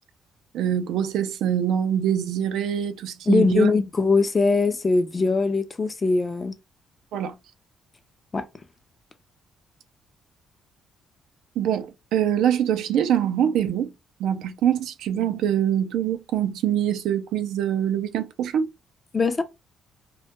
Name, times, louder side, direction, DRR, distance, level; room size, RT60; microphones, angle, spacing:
voice 1, 0.5-3.7 7.1-7.3 11.6-13.9 14.2-18.7, right 9 dB, 80° right, 0.3 m, -24 dB
voice 2, 3.3-6.5 8.3-8.5 19.1-19.4, left 4 dB, 25° left, 0.4 m, -21 dB
2.2 x 2.1 x 2.8 m
cardioid pair, 110°, 0 cm